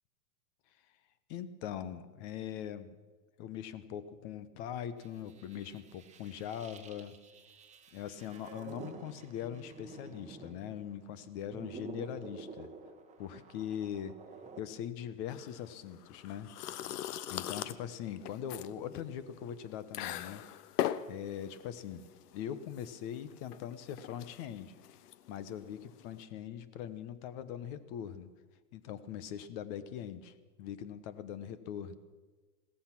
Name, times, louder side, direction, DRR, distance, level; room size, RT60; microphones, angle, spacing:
voice 1, 1.3-2.9 3.4-7.2 7.9-12.7 13.2-14.2 14.6-16.5 17.3-20.4 21.1-24.8 25.3-28.3 28.7-30.3 30.6-31.9, left 9 dB, 40° left, 15 dB, 1.1 m, -41 dB
sound 1, 5.0-11.0 11.3-14.6, right 4 dB, 15° right, 1.2 m, -50 dB
sound 2, 15.3-26.2, left 12 dB, 70° left, 0.8 m, -41 dB
16.5 x 14.5 x 6.0 m, 1.3 s
hypercardioid pair, 125°, 50 cm